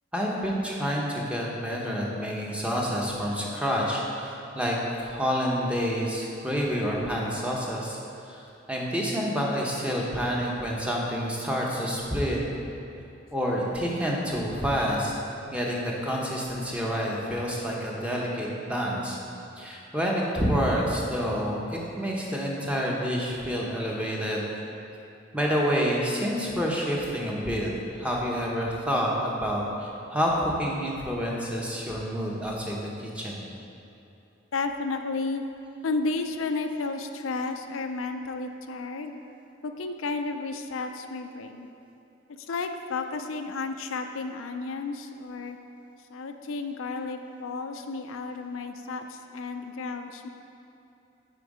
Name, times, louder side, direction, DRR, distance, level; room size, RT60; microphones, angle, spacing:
voice 1, 0.1-8.0 8.3-12.4 13.3-15.1 15.5-19.2 19.6-24.4 25.3-27.7 28.0-33.4, equal, 5° right, -3 dB, 0.9 m, -28 dB
voice 2, 34.5-35.4 35.8-39.1 39.6-41.7 42.3-45.6 46.1-50.3, left 3 dB, 85° left, 6 dB, 0.5 m, -32 dB
9.2 x 4.4 x 4.9 m, 2.8 s
head